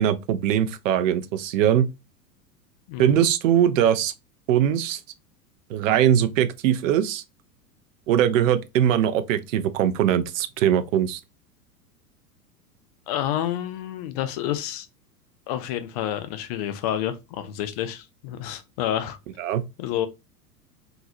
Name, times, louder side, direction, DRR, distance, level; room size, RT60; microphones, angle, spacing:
voice 1, 0.0-1.9 3.0-4.1 4.5-5.0 5.7-7.2 8.1-11.2 19.4-19.6, right 10 dB, 55° right, 0.6 m, -21 dB
voice 2, 2.9-3.3 13.1-14.9 15.5-19.2 19.8-20.1, left 11 dB, 30° left, 0.3 m, -29 dB
3.8 x 2.8 x 2.6 m
figure-of-eight pair, 90°, 47 cm